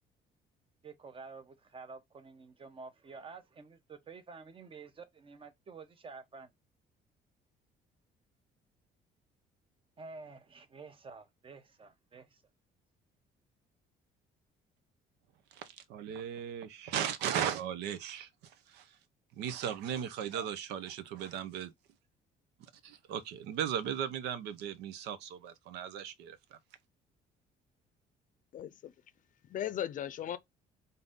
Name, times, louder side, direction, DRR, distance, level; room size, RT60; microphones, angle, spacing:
voice 1, 0.8-6.5 10.0-12.4, right 4 dB, 30° right, 0.9 m, -50 dB
voice 2, 15.5-18.3 18.7-18.9 19.4-21.7 22.8-26.6, right 9 dB, 85° right, 0.7 m, -37 dB
voice 3, 28.5-28.9 29.4-30.4, left 11 dB, 50° left, 0.6 m, -37 dB
3.9 x 2.7 x 3.6 m
cardioid pair, 110°, 17 cm